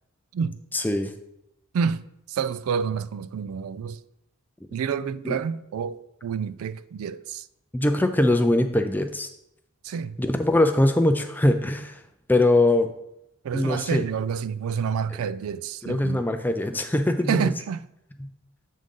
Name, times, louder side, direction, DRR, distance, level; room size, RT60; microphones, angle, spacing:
voice 1, 0.7-1.1 5.2-5.4 7.7-9.3 10.2-12.0 12.3-12.9 13.5-14.0 15.8-17.5 18.2-18.3, left 1 dB, 10° left, 0.3 m, -22 dB
voice 2, 1.7-4.0 4.7-7.5 9.8-10.2 13.4-16.2 17.3-17.8, right 6 dB, 80° right, 0.3 m, -28 dB
7.7 x 3.8 x 5.3 m
head